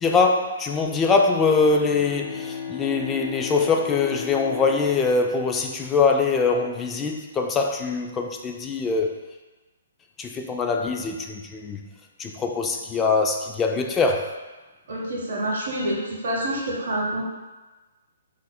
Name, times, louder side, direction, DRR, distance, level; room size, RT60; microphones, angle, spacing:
voice 1, 0.0-9.2 10.2-11.8 12.2-14.3, left 4 dB, 15° left, 3 dB, 0.4 m, -23 dB
Bowed string instrument, 1.3-6.2, left 6 dB, 60° left, 0.7 m, -36 dB
voice 2, 14.9-17.2, right 1 dB, 65° right, -5 dB, 0.8 m, -27 dB
3.9 x 2.5 x 4.2 m, 1.2 s
hypercardioid pair, 135°, 0 cm